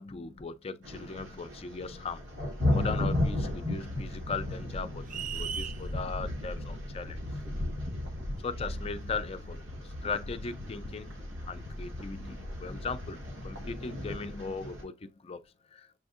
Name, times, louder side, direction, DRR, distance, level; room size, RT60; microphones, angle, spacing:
voice 1, 0.0-2.3 2.7-7.2 8.4-11.2 11.5-15.5 15.7-15.9, left 4 dB, 30° left, 0.4 m, -38 dB
sound 1, 0.8-14.8, left 1 dB, 90° right, 1.6 m, -35 dB
sound 2, 3.2-14.7, left 1 dB, 70° right, 1.4 m, -44 dB
sound 3, 5.1-5.8, right 8 dB, 40° right, 0.3 m, -36 dB
7.1 x 2.6 x 2.4 m
head